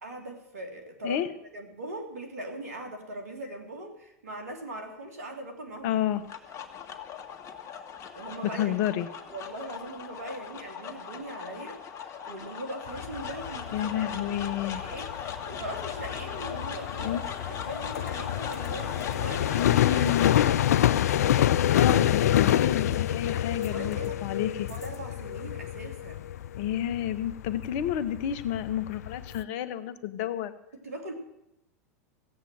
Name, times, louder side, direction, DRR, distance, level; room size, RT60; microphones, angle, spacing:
voice 1, 0.0-1.2 1.5-5.9 8.1-8.7 9.3-21.3 21.7-22.0 23.6-24.2 24.7-26.2 30.8-31.1, right 1 dB, 75° right, 4 dB, 2.9 m, -41 dB
voice 2, 5.8-6.2 8.4-9.1 13.7-14.8 17.0-17.2 19.5-20.3 21.7-24.7 26.6-30.5, left 10 dB, 55° left, 12 dB, 1.1 m, -30 dB
sound 1, 5.9-24.3, left 7 dB, 35° left, 1.7 m, -39 dB
sound 2, 12.9-29.4, left 12 dB, 75° left, 0.4 m, -27 dB
15.5 x 8.4 x 7.7 m, 0.82 s
hypercardioid pair, 95°, 9 cm